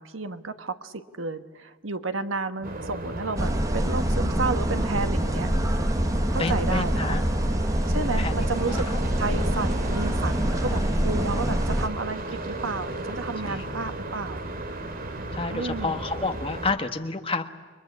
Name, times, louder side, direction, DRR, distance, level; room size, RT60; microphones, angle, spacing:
voice 1, 0.0-5.5 6.3-7.2 7.9-8.9 9.2-14.4 15.5-16.0, right 3 dB, 85° right, 9 dB, 1.4 m, -32 dB
sound 1, 2.6-16.7, right 2 dB, 50° right, 2.3 m, -35 dB
sound 2, 3.4-11.9, equal, 20° right, 1.1 m, -25 dB
voice 2, 6.4-7.2 8.0-9.0 10.7-10.9 13.5-13.8 15.3-17.5, left 3 dB, 30° left, 6 dB, 1.5 m, -30 dB
29.0 x 23.0 x 8.7 m, 1.5 s
head